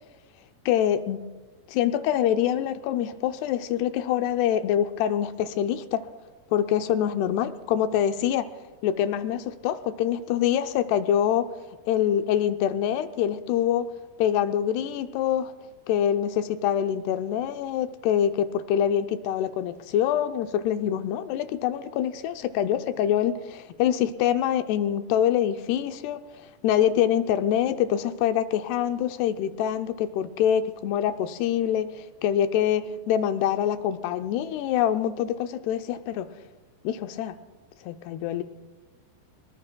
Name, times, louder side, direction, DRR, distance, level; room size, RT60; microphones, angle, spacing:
voice 1, 0.7-1.2 1.7-6.1 6.5-8.5 8.8-11.5 11.9-13.9 14.2-15.5 15.9-36.3 36.8-37.4 37.8-38.4, left 10 dB, 80° left, 9 dB, 2.5 m, -25 dB
23.5 x 21.0 x 2.2 m, 1.3 s
omnidirectional pair, 4.8 m